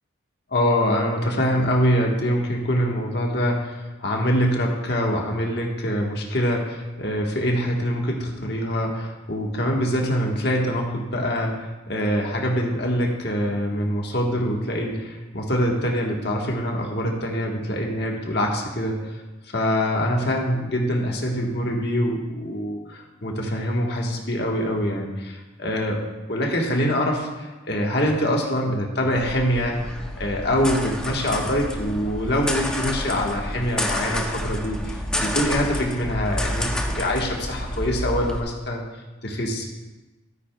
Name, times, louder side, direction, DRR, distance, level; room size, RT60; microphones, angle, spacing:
voice 1, 0.5-19.0 19.5-26.0 26.3-38.8 39.2-39.7, equal, 55° left, 0 dB, 1.4 m, -24 dB
sound 1, 29.1-38.4, left 1 dB, 5° left, 0.6 m, -29 dB
12.5 x 9.4 x 2.3 m, 1.2 s
head